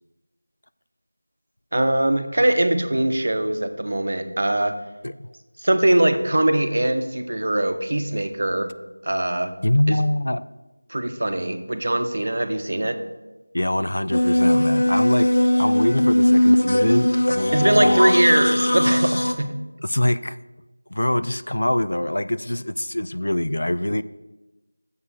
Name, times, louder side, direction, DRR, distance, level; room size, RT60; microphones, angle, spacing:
voice 1, 1.7-4.8 5.6-8.7 9.0-9.5 9.9-10.0 10.9-13.0 17.5-19.5, right 1 dB, 50° right, 8 dB, 0.8 m, -21 dB
voice 2, 9.6-10.4 13.5-15.3 15.6-18.3 19.8-20.4 20.9-24.0, left 1 dB, 80° left, 14 dB, 0.4 m, -24 dB
sound 1, 14.1-19.3, left 1 dB, 45° left, 0.7 m, -19 dB
7.0 x 6.5 x 6.3 m, 1.1 s
figure-of-eight pair, 180°, 0 cm